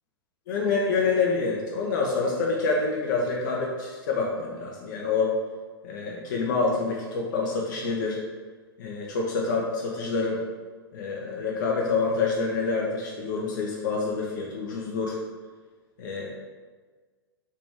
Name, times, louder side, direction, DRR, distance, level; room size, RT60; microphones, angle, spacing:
voice 1, 0.5-5.3 5.8-8.2 8.8-10.4 10.9-15.2 16.0-16.3, left 4 dB, 50° left, -2 dB, 0.6 m, -27 dB
3.2 x 2.9 x 3.4 m, 1.4 s
figure-of-eight pair, 105°, 13 cm